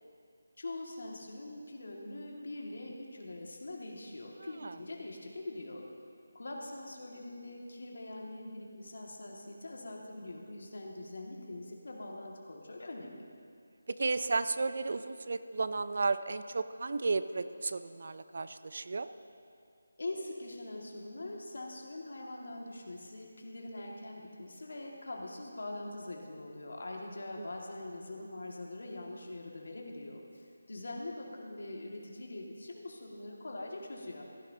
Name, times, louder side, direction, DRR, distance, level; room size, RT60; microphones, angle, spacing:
voice 1, 0.6-5.8 6.3-13.2 20.0-34.2, left 2 dB, 70° left, -1 dB, 2.0 m, -43 dB
voice 2, 13.9-19.1 27.4-27.5, right 3 dB, 55° right, 12 dB, 0.5 m, -33 dB
15.5 x 12.0 x 2.8 m, 2.4 s
figure-of-eight pair, 165°, 0 cm